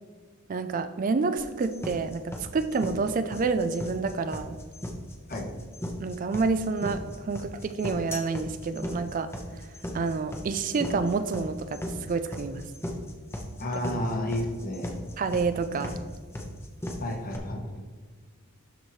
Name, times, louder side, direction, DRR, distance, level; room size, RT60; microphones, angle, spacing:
voice 1, 0.5-4.6 6.0-9.3 9.9-12.6 15.2-15.9, right 4 dB, 35° right, 10 dB, 0.3 m, -28 dB
sound 1, 1.4-17.4, equal, 10° left, 0.8 m, -36 dB
voice 2, 13.6-15.1 17.0-17.8, left 1 dB, 40° left, 3 dB, 1.1 m, -32 dB
12.0 x 4.5 x 3.1 m, 1.5 s
head